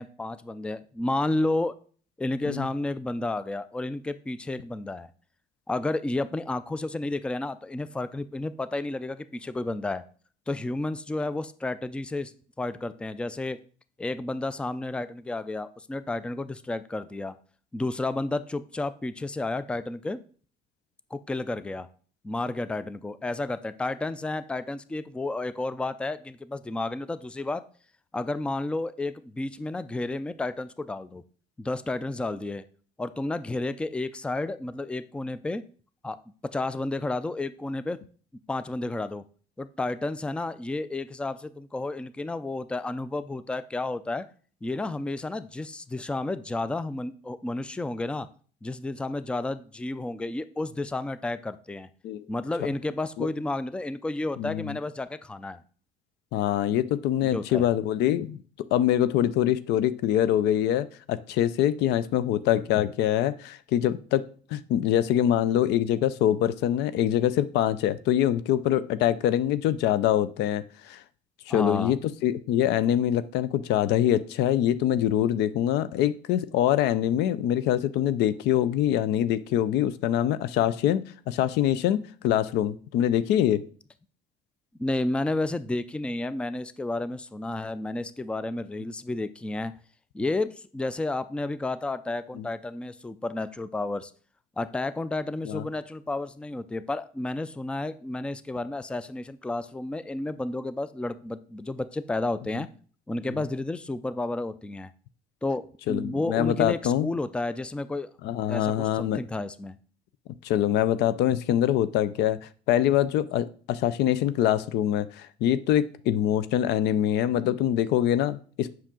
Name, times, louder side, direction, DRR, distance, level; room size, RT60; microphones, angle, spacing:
voice 1, 0.0-1.8 2.2-5.1 5.7-10.0 10.5-12.3 12.6-13.6 14.0-17.3 17.7-20.2 21.1-21.9 22.2-27.6 28.1-31.2 31.6-32.6 33.0-35.6 36.0-36.2 36.5-38.0 38.5-39.2 39.6-44.3 44.6-48.3 48.6-51.9 52.3-55.6 57.2-57.6 71.5-71.9 84.8-89.7 90.1-94.1 94.6-102.7 103.1-104.9 105.4-108.1 108.5-109.8, left 2 dB, 5° left, 14 dB, 0.4 m, -31 dB
voice 2, 54.4-54.8 56.3-58.4 58.7-71.0 71.5-83.6 92.3-92.5 95.4-95.7 102.5-102.6 105.9-107.1 108.2-109.2 110.4-112.4 112.7-118.7, left 11 dB, 85° left, 15 dB, 0.5 m, -24 dB
7.4 x 5.8 x 3.7 m, 0.42 s
cardioid pair, 110°, 17 cm